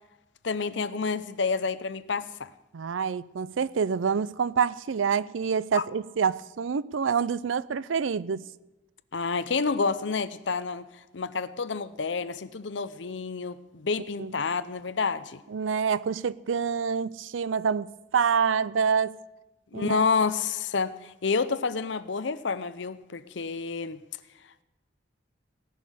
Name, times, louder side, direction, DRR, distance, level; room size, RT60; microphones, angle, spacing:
voice 1, 0.4-2.5 5.7-5.8 9.1-10.9 11.1-15.4 19.7-24.0, left 4 dB, 70° left, 0.7 m, -29 dB
voice 2, 2.7-8.5 14.2-14.3 15.5-19.1 19.7-20.1, right 6 dB, 90° right, 0.5 m, -27 dB
18.0 x 6.5 x 9.8 m
head